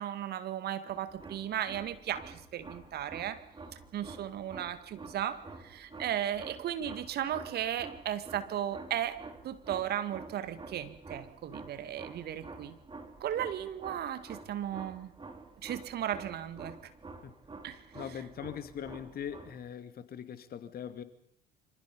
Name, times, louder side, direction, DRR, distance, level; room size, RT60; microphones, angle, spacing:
voice 1, 0.0-3.4 3.9-12.8 13.2-15.1 15.6-16.9 17.6-17.8, right 10 dB, 55° right, 2.1 m, -36 dB
sound 1, 0.9-19.6, right 3 dB, 25° right, 4.0 m, -49 dB
voice 2, 17.9-21.0, left 9 dB, 50° left, 2.4 m, -41 dB
26.5 x 26.0 x 5.4 m
hypercardioid pair, 55°, 20 cm